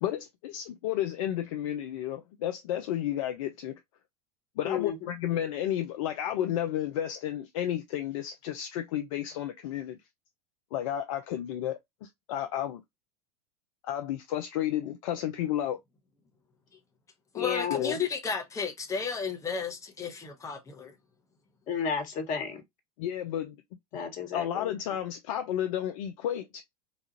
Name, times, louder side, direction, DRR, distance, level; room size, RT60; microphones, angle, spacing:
voice 1, 0.0-3.8 4.6-10.0 10.7-12.8 13.8-15.8 17.7-18.0 23.0-23.6 24.3-26.6, left 11 dB, 55° left, 0.5 m, -32 dB
voice 2, 4.6-5.1 17.3-17.8 21.7-22.6 23.9-24.7, left 6 dB, 40° left, 1.4 m, -32 dB
voice 3, 17.3-20.9, left 5 dB, 15° left, 0.9 m, -33 dB
4.0 x 2.4 x 2.8 m
figure-of-eight pair, 85°, 20 cm